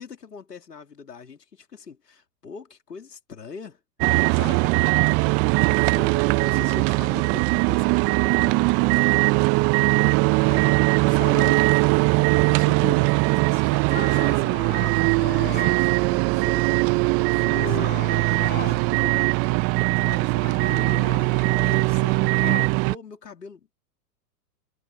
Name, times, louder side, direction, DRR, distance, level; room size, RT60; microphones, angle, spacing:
voice 1, 0.0-3.8 4.0-4.8 5.7-9.2 10.5-10.8 11.1-11.6 12.4-16.7 17.2-22.3 22.8-23.7, left 5 dB, 85° left, 3.2 m, -41 dB
sound 1, 4.0-23.0, right 27 dB, 30° right, 0.7 m, -20 dB
sound 2, 13.9-15.8 16.3-16.8 17.2-18.8 19.1-19.8 20.4-22.7, left 8 dB, 20° left, 2.8 m, -37 dB
hypercardioid pair, 105°, 47 cm